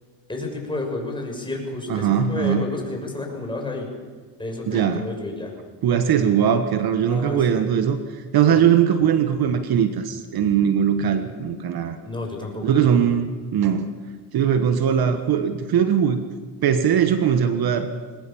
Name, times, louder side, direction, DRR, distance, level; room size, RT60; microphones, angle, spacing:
voice 1, 0.3-3.9 4.4-5.5 7.0-7.4 8.4-8.6 12.0-13.0, left 2 dB, 10° left, 1 dB, 6.3 m, -31 dB
voice 2, 1.9-2.7 4.7-5.1 5.8-12.0 12.6-13.9 14.3-16.2 16.6-17.9, right 8 dB, 55° right, 8 dB, 1.5 m, -20 dB
22.0 x 20.0 x 7.1 m, 1.5 s
cardioid pair, 110°, 45 cm